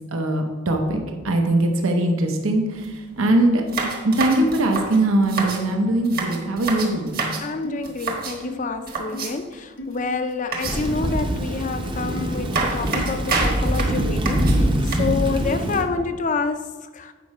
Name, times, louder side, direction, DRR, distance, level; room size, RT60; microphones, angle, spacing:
voice 1, 0.1-2.6 3.2-3.6 4.0-7.3, right 1 dB, 75° right, 3 dB, 0.9 m, -21 dB
sound 1, 2.7-2.9 3.2-3.3 3.7-5.7 6.0-7.5 7.8-8.4 8.9-9.5 10.5-11.1 12.0-12.1 12.5-15.0, right 4 dB, 45° right, 1.3 m, -28 dB
voice 2, 7.4-14.7 15.0-17.1, left 4 dB, 35° left, 9 dB, 0.5 m, -28 dB
sound 2, 7.6-7.8 8.4-8.6 9.1-9.3 9.8-10.0 10.9-11.1 12.1-12.3 12.9-13.1 13.8-13.9 14.7-14.9, left 2 dB, 60° left, 0.9 m, -34 dB
Thunder / Rain, 10.6-15.8, right 1 dB, 25° right, 0.7 m, -24 dB
8.4 x 5.3 x 4.8 m, 1.4 s
head